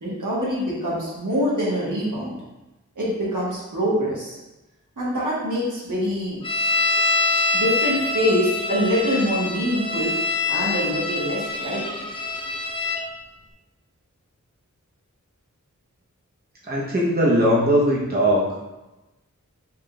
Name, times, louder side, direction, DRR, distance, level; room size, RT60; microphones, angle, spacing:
voice 1, 0.0-2.4 2.9-4.4 5.0-6.4 7.5-10.1 10.5-12.1, equal, 80° right, -7 dB, 1.3 m, -24 dB
sound 1, 6.4-13.0, left 2 dB, 15° left, 0.6 m, -25 dB
voice 2, 16.7-18.5, equal, 30° right, -5 dB, 0.8 m, -19 dB
4.3 x 2.4 x 3.1 m, 1.0 s
wide cardioid pair, 45°, 31 cm